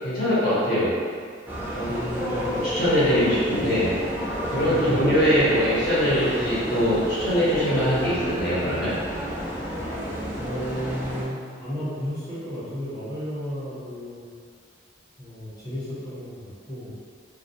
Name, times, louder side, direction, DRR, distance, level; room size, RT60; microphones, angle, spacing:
voice 1, 0.0-0.9 1.7-2.0 2.5-3.9 4.5-8.9, equal, 55° left, -10 dB, 1.0 m, -22 dB
sound 1, 1.5-11.3, equal, 10° right, 0.3 m, -30 dB
voice 2, 1.9-2.5 4.7-5.1 10.4-14.2 15.2-16.9, equal, 20° left, -11 dB, 0.8 m, -33 dB
2.2 x 2.2 x 2.7 m, 2.1 s
head